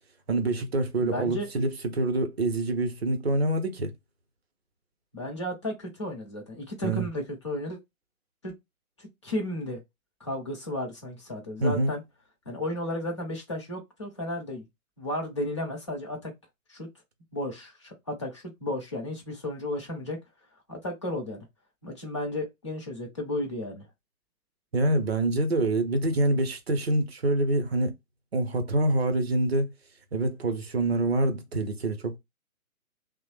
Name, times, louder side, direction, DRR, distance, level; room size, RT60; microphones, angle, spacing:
voice 1, 0.3-3.9 6.8-7.1 11.6-11.9 24.7-27.9 28.3-29.7 30.1-32.2, right 2 dB, 45° right, 0.7 m, -26 dB
voice 2, 1.0-1.5 5.1-7.8 8.4-8.5 9.0-9.8 10.2-12.0 12.5-14.6 15.0-16.3 16.7-16.9 17.3-20.2 20.7-21.4 21.8-23.8, left 1 dB, 20° left, 0.6 m, -33 dB
3.1 x 2.0 x 3.0 m
figure-of-eight pair, 140°, 44 cm